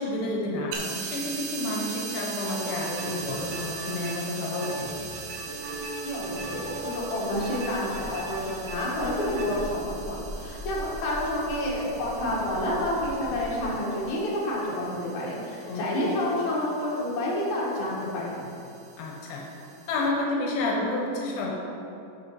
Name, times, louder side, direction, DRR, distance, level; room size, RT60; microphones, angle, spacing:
voice 1, 0.0-4.9 15.7-16.2 19.0-19.4 19.9-21.5, left 2 dB, 85° left, -2 dB, 2.7 m, -30 dB
sound 1, 0.7-20.1, right 6 dB, 90° right, 2.7 m, -41 dB
sound 2, 2.4-9.6, right 2 dB, 70° right, 1.5 m, -39 dB
sound 3, 5.8-13.6, left 1 dB, 40° left, 0.7 m, -42 dB
voice 2, 6.0-18.5, left 1 dB, 60° left, -6 dB, 2.7 m, -29 dB
11.0 x 5.9 x 3.1 m, 2.7 s
omnidirectional pair, 4.1 m